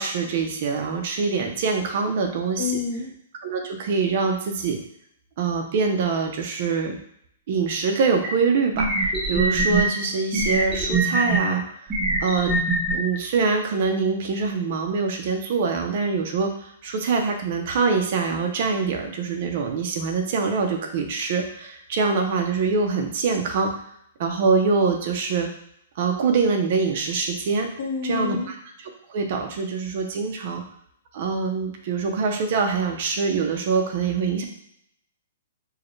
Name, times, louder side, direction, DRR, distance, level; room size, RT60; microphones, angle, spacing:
voice 1, 0.0-2.8 3.4-4.8 5.4-6.9 7.5-11.6 12.2-12.6 12.9-23.7 24.2-25.5 26.0-27.7 28.0-30.6 31.1-34.4, right 4 dB, 40° right, 3 dB, 0.6 m, -24 dB
voice 2, 2.6-3.1 27.8-28.5, left 6 dB, 45° left, 2 dB, 0.7 m, -28 dB
sound 1, 8.2-8.3 8.8-9.8 10.3-11.4 11.9-12.9, right 3 dB, 10° right, 0.8 m, -22 dB
4.6 x 2.2 x 3.1 m, 0.71 s
hypercardioid pair, 170°, 0 cm